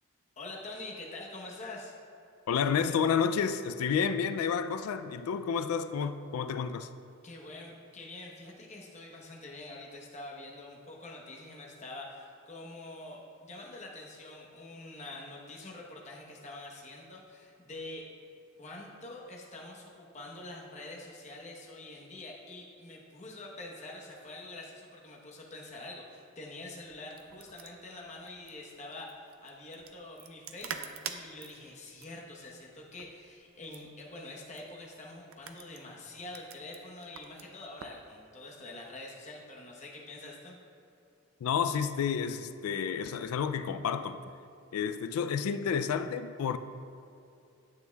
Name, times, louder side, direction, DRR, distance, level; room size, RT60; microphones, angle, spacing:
voice 1, 0.4-2.0 7.2-18.1 18.6-40.6, left 2 dB, 35° left, 1.0 m, -46 dB
voice 2, 2.5-6.9 41.4-44.2 44.7-46.6, left 7 dB, 90° left, 0.3 m, -30 dB
sound 1, 26.9-38.0, right 7 dB, 75° right, 0.5 m, -47 dB
9.6 x 7.9 x 2.3 m
head